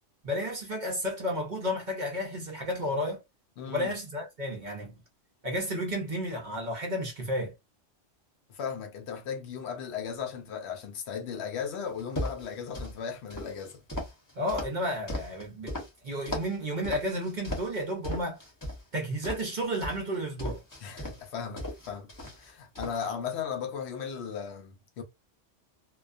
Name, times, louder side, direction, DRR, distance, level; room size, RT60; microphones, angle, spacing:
voice 1, 0.2-3.2 3.7-4.9 5.4-7.5 14.4-15.7 16.0-18.4 18.9-20.6, equal, 45° right, 0.7 m, -32 dB
voice 2, 3.6-3.9 8.5-13.8 20.8-22.1 22.4-25.0, left 7 dB, 70° left, 0.8 m, -36 dB
sound 1, 12.0-12.9 13.3-15.9 16.2-16.6 16.8-17.8 18.0-18.8 19.2-21.2 21.6-22.5 22.7-23.1, left 1 dB, 20° left, 0.7 m, -36 dB
2.3 x 2.2 x 2.4 m
omnidirectional pair, 1.2 m